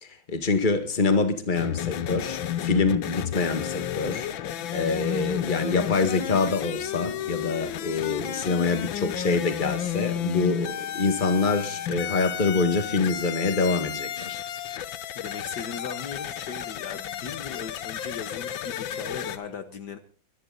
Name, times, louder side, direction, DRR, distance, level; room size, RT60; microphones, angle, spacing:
voice 1, 0.0-14.4, left 4 dB, 25° left, 1.8 m, -26 dB
sound 1, 1.5-19.4, left 10 dB, 85° left, 1.7 m, -32 dB
sound 2, 4.3-11.8, left 5 dB, 45° left, 8.3 m, -48 dB
voice 2, 15.2-20.0, left 6 dB, 60° left, 1.8 m, -38 dB
24.0 x 11.0 x 4.0 m
omnidirectional pair, 2.1 m